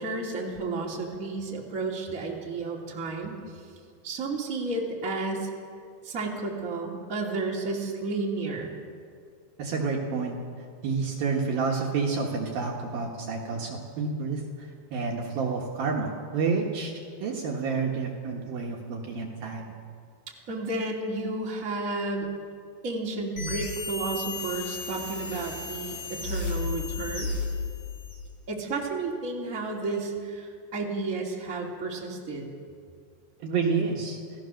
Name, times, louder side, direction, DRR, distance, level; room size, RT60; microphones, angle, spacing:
voice 1, 0.0-3.6 4.0-5.5 6.0-8.8 20.3-22.3 22.8-27.3 28.5-32.5, right 3 dB, 20° right, -2 dB, 2.6 m, -32 dB
voice 2, 9.6-10.4 10.8-16.9 17.2-19.7 33.4-34.2, right 4 dB, 65° right, 0 dB, 3.1 m, -29 dB
sound 1, 23.4-28.2, left 4 dB, 35° left, 4.8 m, -33 dB
28.0 x 17.5 x 6.5 m, 2.2 s
omnidirectional pair, 5.1 m